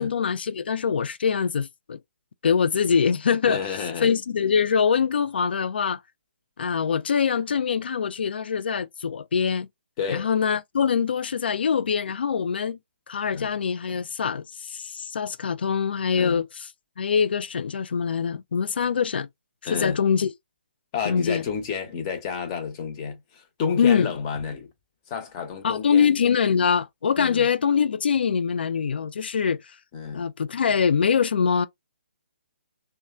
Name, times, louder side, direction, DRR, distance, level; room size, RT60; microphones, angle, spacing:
voice 1, 0.0-2.0 2.4-6.0 6.6-9.7 10.1-12.8 13.1-16.7 17.0-19.3 19.7-20.3 21.0-21.4 23.8-24.2 25.6-29.6 30.1-31.7, left 6 dB, 65° left, 0.4 m, -24 dB
voice 2, 3.4-4.1 10.0-10.3 13.3-13.5 16.2-16.4 19.6-20.0 20.9-24.7 25.1-26.1 27.2-27.5 29.9-30.3, left 6 dB, 30° left, 1.0 m, -30 dB
2.9 x 2.2 x 2.3 m
figure-of-eight pair, 140°, 6 cm